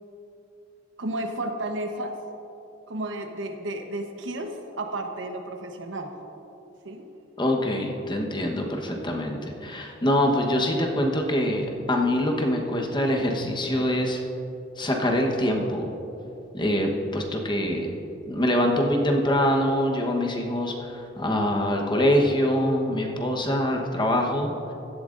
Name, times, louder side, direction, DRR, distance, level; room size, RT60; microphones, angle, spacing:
voice 1, 1.0-2.2 2.9-6.1 6.8-7.1, right 1 dB, 80° right, 5 dB, 1.0 m, -32 dB
voice 2, 7.4-14.2 14.8-15.9 16.5-17.9 18.3-24.5, left 1 dB, 25° left, 1 dB, 1.1 m, -24 dB
16.0 x 12.0 x 2.6 m, 2.9 s
head